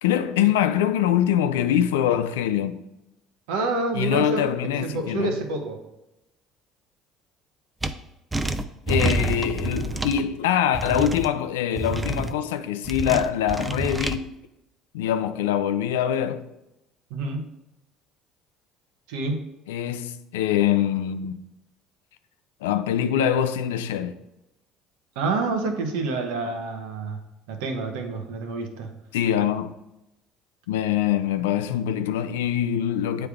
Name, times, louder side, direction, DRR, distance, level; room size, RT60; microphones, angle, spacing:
voice 1, 0.0-2.8 3.9-5.4 8.9-14.3 14.9-16.5 19.7-21.4 22.6-24.2 29.1-29.7 30.7-33.3, left 10 dB, 90° left, 0.4 m, -24 dB
voice 2, 3.5-4.4 4.7-5.8 17.1-17.5 19.1-19.5 25.2-27.2 27.5-28.9, right 3 dB, 80° right, 1.0 m, -28 dB
sound 1, 7.8-7.9 8.3-10.2 10.7-11.3 11.8-12.3 12.9-14.2, right 2 dB, 15° right, 0.5 m, -27 dB
7.9 x 3.3 x 3.6 m
supercardioid pair, 75°, 0 cm